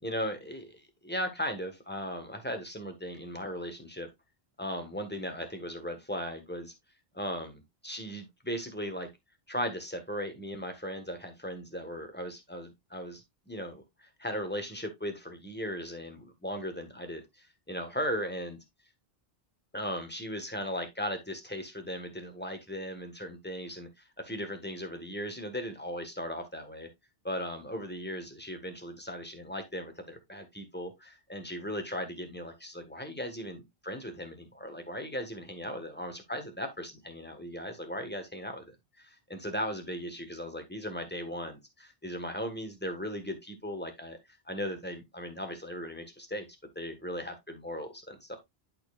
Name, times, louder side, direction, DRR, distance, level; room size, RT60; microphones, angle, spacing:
voice 1, 0.0-4.1 4.6-6.7 7.1-9.1 9.5-13.2 13.5-18.6 19.7-26.9 27.2-44.2 44.5-46.5 46.7-48.4, equal, 10° left, 1.4 m, -37 dB
11.5 x 4.4 x 2.4 m
omnidirectional pair, 1.1 m